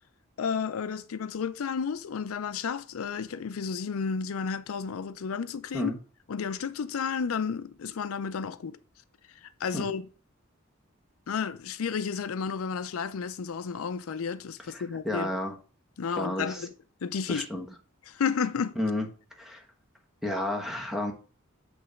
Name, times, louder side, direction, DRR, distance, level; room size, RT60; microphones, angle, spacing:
voice 1, 0.4-5.9 6.3-8.8 9.4-10.0 11.3-15.3 16.0-16.7 17.0-17.5 18.1-18.8, left 6 dB, 80° left, 0.4 m, -32 dB
voice 2, 14.7-15.5 16.2-16.6 17.3-17.6 18.7-19.1 19.4-19.6 20.2-21.1, left 1 dB, ahead, 1.1 m, -31 dB
7.8 x 3.3 x 5.0 m
head